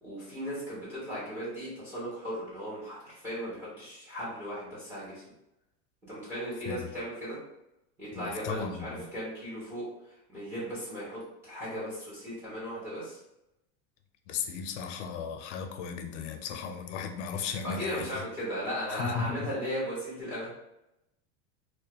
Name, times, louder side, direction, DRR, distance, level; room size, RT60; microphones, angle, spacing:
voice 1, 0.0-5.2 6.1-7.4 8.0-9.9 10.3-13.2 17.6-20.5, equal, 5° right, -8 dB, 0.4 m, -36 dB
voice 2, 8.1-9.0 14.3-18.0 18.9-19.5, left 6 dB, 90° left, 5 dB, 0.5 m, -35 dB
2.2 x 2.1 x 2.8 m, 0.88 s
supercardioid pair, 180°, 35 cm